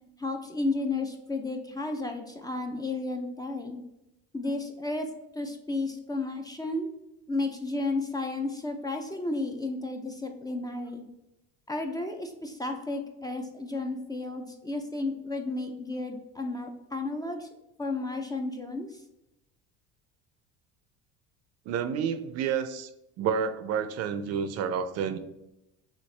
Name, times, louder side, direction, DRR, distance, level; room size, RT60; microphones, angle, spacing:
voice 1, 0.2-3.8 4.3-5.1 5.3-6.9 7.3-11.1 11.7-17.5 17.8-19.0, left 2 dB, 15° left, 4 dB, 0.4 m, -33 dB
voice 2, 21.7-22.9 23.2-25.2, right 7 dB, 55° right, 11 dB, 0.5 m, -29 dB
6.4 x 2.5 x 3.2 m, 0.88 s
cardioid pair, 120°, 31 cm